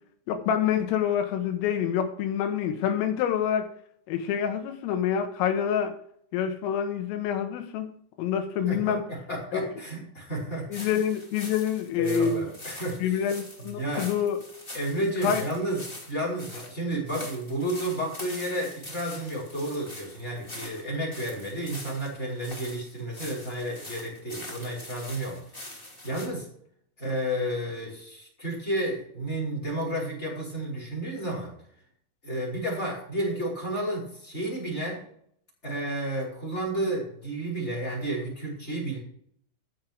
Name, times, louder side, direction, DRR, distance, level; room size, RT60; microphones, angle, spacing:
voice 1, 0.3-3.7 4.1-5.9 6.3-7.9 8.2-9.0 9.5-9.7 10.7-12.5 13.0-14.4 15.2-15.4, left 8 dB, 85° left, 6 dB, 4.0 m, -27 dB
voice 2, 8.7-10.9 12.0-13.2 13.6-14.1 14.7-15.8 16.1-25.4 26.0-26.4 27.0-31.5 32.2-35.0 35.6-39.0, right 1 dB, 15° left, -1 dB, 4.9 m, -31 dB
sound 1, 10.7-26.3, left 1 dB, 30° left, 1.0 m, -43 dB
14.0 x 7.5 x 4.7 m, 0.65 s
omnidirectional pair, 5.8 m